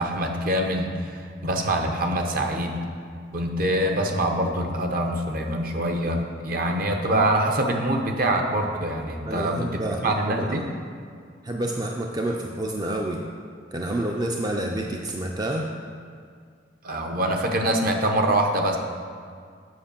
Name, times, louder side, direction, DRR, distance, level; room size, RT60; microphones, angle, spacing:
voice 1, 0.0-2.8 3.3-9.6 10.0-10.6 16.8-18.8, right 1 dB, 50° right, 3 dB, 0.9 m, -24 dB
voice 2, 9.2-10.7 11.4-13.2 13.7-15.7, right 1 dB, 20° right, 1 dB, 0.5 m, -28 dB
7.8 x 5.5 x 6.8 m, 2.1 s
head